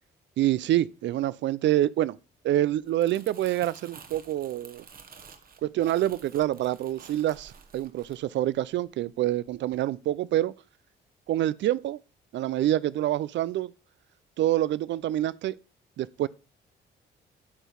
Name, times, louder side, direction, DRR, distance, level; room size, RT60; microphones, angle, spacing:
voice 1, 0.4-2.2 2.4-4.9 5.6-10.5 11.3-12.0 12.3-13.7 14.4-15.6 16.0-16.3, right 13 dB, 65° right, 0.4 m, -26 dB
Crumpling crinkling, 2.8-9.1 9.5-9.7, right 6 dB, 45° right, 1.1 m, -51 dB
8.7 x 4.6 x 5.2 m
cardioid pair, 90°, 20 cm